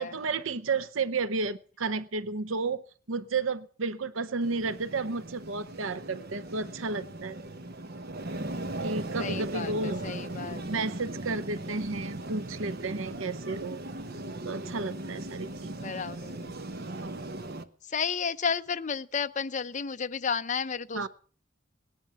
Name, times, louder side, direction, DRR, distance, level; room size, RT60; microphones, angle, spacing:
voice 1, 0.0-2.8 3.1-7.4 8.8-10.1 10.7-13.8 14.4-15.7 17.0-17.3 20.9-21.1, right 4 dB, 85° right, 0.7 m, -32 dB
sound 1, 4.4-17.6, right 1 dB, 50° right, 1.1 m, -38 dB
voice 2, 9.2-10.6 15.7-16.6 17.9-21.1, left 6 dB, 40° left, 0.6 m, -32 dB
19.0 x 10.5 x 6.9 m
head